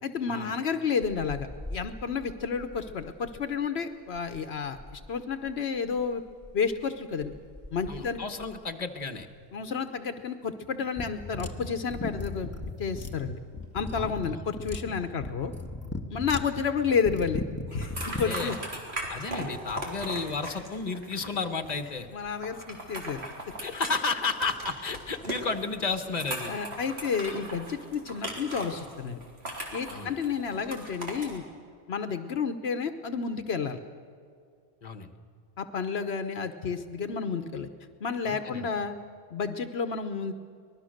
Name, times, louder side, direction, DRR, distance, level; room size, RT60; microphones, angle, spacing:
voice 1, 0.0-6.2 6.5-7.3 7.7-8.2 9.5-12.5 12.8-13.4 13.7-15.5 16.1-17.4 17.7-18.6 22.1-23.2 26.5-29.2 29.7-31.4 31.9-33.8 35.6-37.7 38.0-39.0 39.3-40.3, left 6 dB, 75° left, 8 dB, 1.1 m, -31 dB
sound 1, 1.0-9.5 9.8-10.0 10.4-11.2 11.6-11.9 12.2-12.3 12.5-12.9 13.5-14.0, left 1 dB, 10° right, 4.1 m, -47 dB
voice 2, 7.9-9.3 13.9-14.3 18.1-18.6 19.1-22.1 23.6-26.5 29.9-30.2 34.8-35.1 38.2-38.7, left 4 dB, 40° left, 8 dB, 1.3 m, -32 dB
sound 2, 11.0-18.3, left 2 dB, 15° left, 1.1 m, -36 dB
sound 3, 17.7-31.4, right 1 dB, 80° right, 3.9 m, -39 dB
25.0 x 20.0 x 6.5 m, 2.2 s
omnidirectional pair, 1.1 m